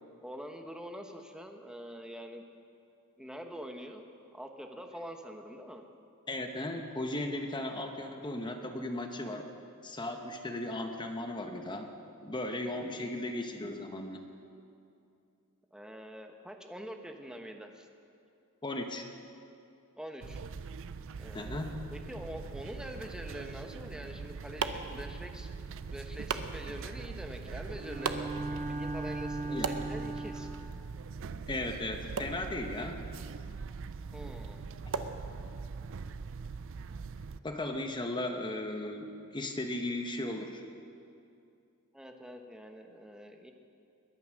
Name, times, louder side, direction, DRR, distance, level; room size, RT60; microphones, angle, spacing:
voice 1, 0.2-2.4 3.2-4.0 4.3-5.8 12.8-13.1 15.7-17.9 20.0-20.4 21.2-25.5 25.9-30.5 34.1-34.6 41.9-43.5, equal, 5° right, 4 dB, 1.0 m, -45 dB
voice 2, 6.3-9.5 9.8-11.9 12.2-14.2 18.6-19.1 21.3-21.7 29.4-29.7 31.5-33.0 35.0-35.1 37.4-40.6, left 1 dB, 20° left, 5 dB, 1.0 m, -36 dB
sound 1, 20.2-37.4, right 4 dB, 60° right, 0.5 m, -42 dB
sound 2, 23.9-35.9, right 5 dB, 90° right, 0.8 m, -42 dB
Bowed string instrument, 27.7-30.9, right 2 dB, 35° right, 0.8 m, -38 dB
21.0 x 9.4 x 6.4 m, 2.5 s
head